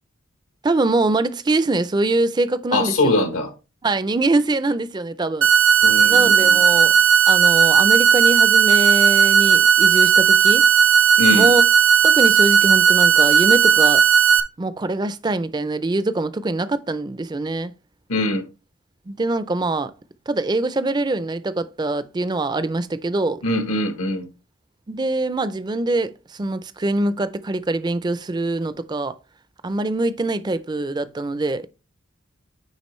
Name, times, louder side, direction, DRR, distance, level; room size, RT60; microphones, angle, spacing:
voice 1, 0.6-3.2 3.8-5.5 6.1-6.9 7.3-10.7 11.3-11.6 12.0-14.0 14.6-17.7 19.1-19.9 20.3-23.4 24.9-29.1 29.6-31.7, right 2 dB, 20° right, 0.4 m, -23 dB
voice 2, 2.7-3.5 5.8-6.6 6.8-6.9 11.2-11.5 18.1-18.4 23.4-24.3, left 2 dB, 85° left, 1.1 m, -22 dB
sound 1, 5.4-14.4, right 7 dB, 75° right, 0.6 m, -15 dB
9.6 x 3.8 x 3.1 m
head